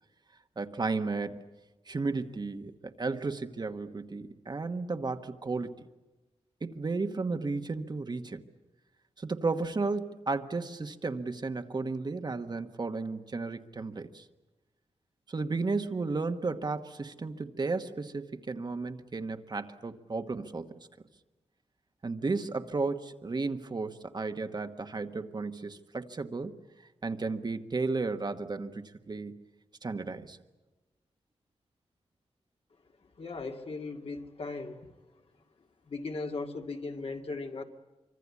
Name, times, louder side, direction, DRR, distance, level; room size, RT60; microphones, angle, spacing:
voice 1, 0.6-1.4 1.9-5.7 6.6-8.4 9.2-14.2 15.3-20.7 22.0-26.5 27.0-29.4 29.8-30.4, right 3 dB, 40° right, 7 dB, 1.3 m, -33 dB
voice 2, 33.0-34.9 35.8-37.6, left 3 dB, 60° left, 4 dB, 2.1 m, -38 dB
25.0 x 25.0 x 8.4 m, 1.1 s
wide cardioid pair, 115°, 11 cm